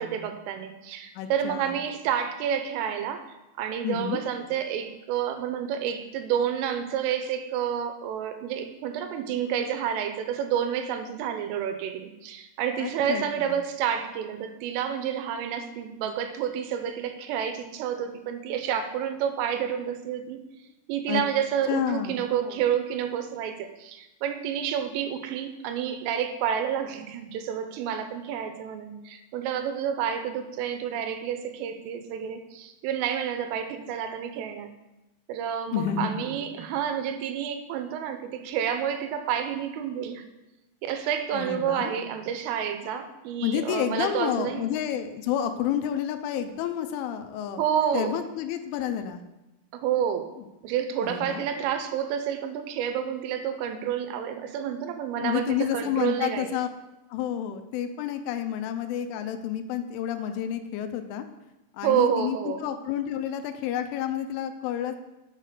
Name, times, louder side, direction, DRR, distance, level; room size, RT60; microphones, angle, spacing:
voice 1, 0.0-3.2 3.6-20.4 20.9-34.7 35.3-40.2 40.9-44.7 47.6-48.1 49.7-50.3 50.6-56.6 61.8-62.7, right 8 dB, 90° right, 7 dB, 3.4 m, -29 dB
voice 2, 1.2-1.8 3.8-4.2 12.8-13.6 21.1-21.2 21.7-22.2 35.7-36.3 41.3-42.0 43.4-47.6 47.9-49.2 51.0-51.5 55.2-56.7 57.1-61.3 61.7-65.0, left 9 dB, 85° left, 8 dB, 3.1 m, -30 dB
7.3 x 5.7 x 6.8 m, 1.0 s
omnidirectional pair, 5.6 m